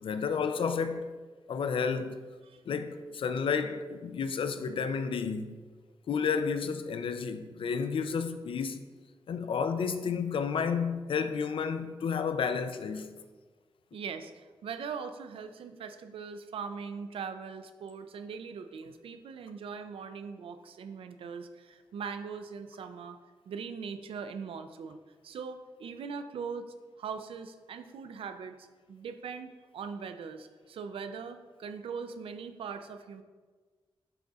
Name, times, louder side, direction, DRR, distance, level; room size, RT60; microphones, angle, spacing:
voice 1, 0.0-1.1 1.5-2.3 2.7-5.5 6.1-8.9 9.3-13.1, left 6 dB, 70° left, 0.5 m, -31 dB
voice 2, 13.9-23.2 23.5-33.2, right 6 dB, 85° right, 0.4 m, -41 dB
11.0 x 3.9 x 2.4 m
cardioid pair, 75°, 9 cm